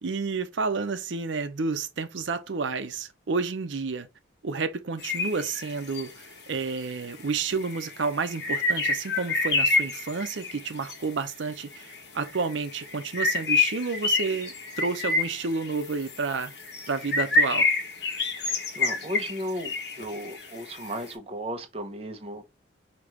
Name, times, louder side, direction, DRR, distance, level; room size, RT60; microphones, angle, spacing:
voice 1, 0.0-4.1 4.4-16.5 16.9-17.7, right 4 dB, 85° right, 0.6 m, -30 dB
sound 1, 5.0-6.0 6.9-7.0 7.3-10.9 11.7-12.0 12.2-20.9, left 3 dB, 65° left, 1.3 m, -27 dB
voice 2, 18.4-22.4, equal, 30° right, 0.7 m, -35 dB
5.1 x 2.9 x 3.0 m
head